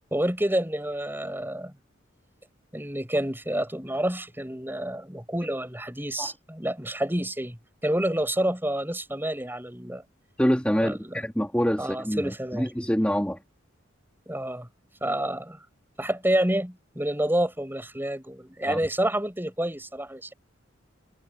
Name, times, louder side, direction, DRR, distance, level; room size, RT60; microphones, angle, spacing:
voice 1, 0.1-1.7 2.7-7.6 7.8-10.0 10.8-11.2 11.8-12.7 14.3-14.7 15.0-15.6 16.0-20.3, right 1 dB, 10° right, 7.5 m, -28 dB
voice 2, 10.4-13.4 18.7-18.8, equal, 5° left, 2.3 m, -26 dB
head